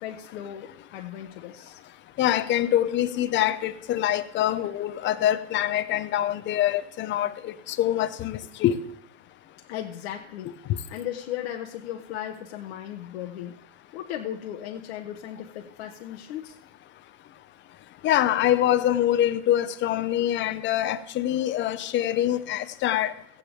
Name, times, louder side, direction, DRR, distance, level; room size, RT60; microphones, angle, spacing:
voice 1, 0.0-1.8 9.7-10.6 10.9-13.6 13.9-16.6 20.3-20.4, left 11 dB, 60° left, 1.0 m, -36 dB
voice 2, 2.2-8.8 18.0-23.1, left 12 dB, 35° left, 0.7 m, -24 dB
16.5 x 8.9 x 3.4 m
hypercardioid pair, 100°, 35 cm